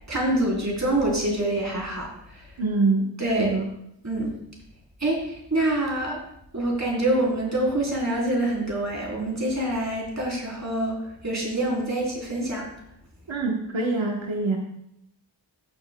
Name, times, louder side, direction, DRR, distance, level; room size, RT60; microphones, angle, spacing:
voice 1, 0.1-2.5 3.2-3.5 4.0-4.3 5.0-6.2 6.5-12.7, right 1 dB, 35° right, -3 dB, 4.0 m, -26 dB
voice 2, 2.6-3.1 3.4-3.7 13.3-14.6, right 3 dB, 85° right, -1 dB, 1.2 m, -24 dB
16.0 x 7.1 x 2.3 m, 0.76 s
wide cardioid pair, 55°, 45 cm